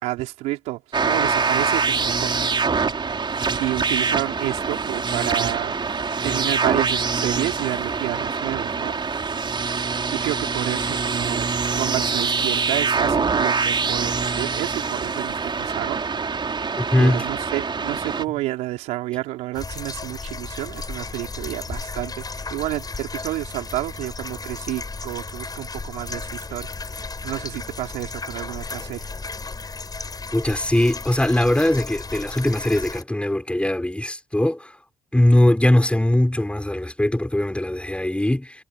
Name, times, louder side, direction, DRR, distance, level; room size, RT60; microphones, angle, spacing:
voice 1, 0.0-2.3 3.6-5.7 6.2-9.0 10.1-16.0 17.0-29.1, right 18 dB, 80° right, 4.3 m, -30 dB
sound 1, 0.9-18.2, right 5 dB, 45° right, 4.8 m, -24 dB
voice 2, 16.8-17.2 30.3-34.7 35.1-38.6, left 1 dB, 10° left, 6.6 m, -20 dB
sound 2, 19.5-33.0, left 3 dB, 35° left, 6.9 m, -34 dB
hypercardioid pair, 40°, 12 cm